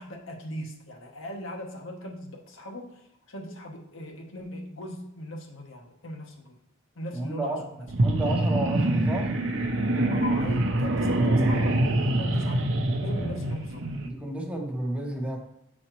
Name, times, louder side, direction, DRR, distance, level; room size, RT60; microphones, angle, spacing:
voice 1, 0.0-6.6 7.0-7.7 10.1-11.9 12.2-13.8, left 1 dB, 70° left, 2 dB, 0.9 m, -39 dB
voice 2, 7.1-7.6 8.0-9.3 14.0-15.4, right 1 dB, 5° right, 1 dB, 0.7 m, -31 dB
sound 1, 7.9-14.1, right 1 dB, 65° right, 0.6 m, -25 dB
7.6 x 4.2 x 3.0 m, 0.87 s
head